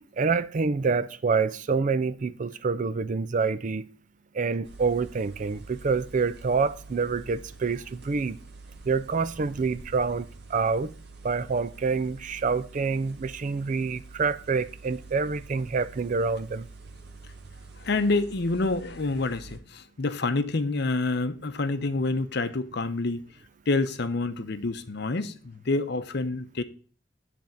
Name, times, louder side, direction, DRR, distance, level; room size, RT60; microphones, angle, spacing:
voice 1, 0.2-3.9 4.3-8.4 8.9-10.9 11.2-16.7, right 4 dB, 40° right, 0.4 m, -27 dB
sound 1, 4.6-19.6, right 3 dB, 60° right, 1.0 m, -47 dB
voice 2, 17.8-23.2 23.7-26.6, left 3 dB, 60° left, 0.7 m, -27 dB
10.5 x 3.5 x 6.9 m
head